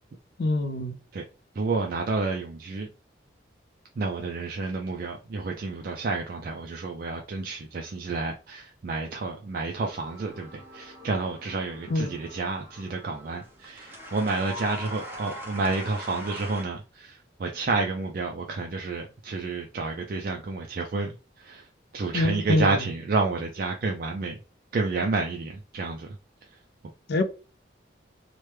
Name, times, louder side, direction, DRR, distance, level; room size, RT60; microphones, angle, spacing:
voice 1, 0.4-1.0 11.9-12.2 22.1-22.8 27.1-27.2, left 2 dB, 55° left, 0.4 m, -25 dB
voice 2, 1.6-2.9 4.0-21.7 21.9-24.4 24.7-26.1, right 3 dB, 50° right, 0.3 m, -30 dB
sound 1, 9.8-16.6, left 1 dB, 10° right, 0.7 m, -42 dB
3.0 x 2.1 x 3.2 m
head